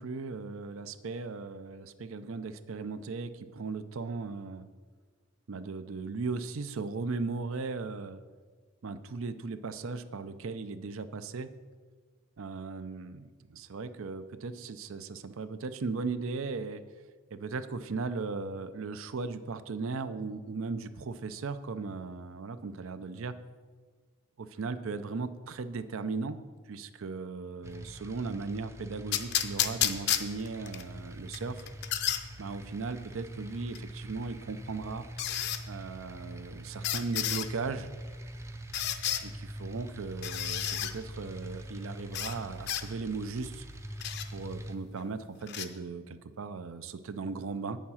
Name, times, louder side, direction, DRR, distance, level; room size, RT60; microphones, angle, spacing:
voice 1, 0.0-4.7 5.5-8.2 8.8-11.5 12.4-16.8 17.3-23.3 24.4-26.4 26.7-31.6 32.4-35.1 35.7-37.9 39.2-43.7 44.3-47.8, right 4 dB, 75° right, 12 dB, 0.5 m, -37 dB
sound 1, 27.6-44.8, right 1 dB, 15° right, 0.4 m, -43 dB
sound 2, 29.1-30.8 31.3-32.2 33.7-33.8 35.2-35.6 36.8-37.5 38.7-39.2 40.2-40.9 42.1-42.4 42.7-42.8 44.0-44.3 45.5-45.7, left 10 dB, 50° left, 0.5 m, -31 dB
8.5 x 7.2 x 5.6 m, 1.5 s
head